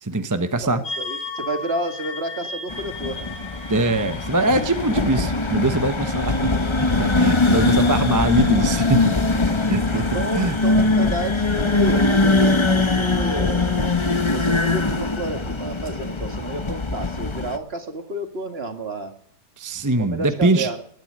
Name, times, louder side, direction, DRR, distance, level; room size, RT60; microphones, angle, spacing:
voice 1, 0.0-0.9 3.7-6.5 6.8-9.2 9.7-10.1 10.3-11.2 19.6-20.7, right 2 dB, 15° right, 0.7 m, -22 dB
voice 2, 0.6-3.3 9.9-13.9 14.3-19.1 20.0-20.8, right 2 dB, 35° right, 2.0 m, -31 dB
sound 1, 0.8-5.3, left 3 dB, 65° left, 3.7 m, -35 dB
sound 2, 2.7-17.6, left 3 dB, 20° left, 0.9 m, -21 dB
20.5 x 9.6 x 7.4 m
omnidirectional pair, 1.8 m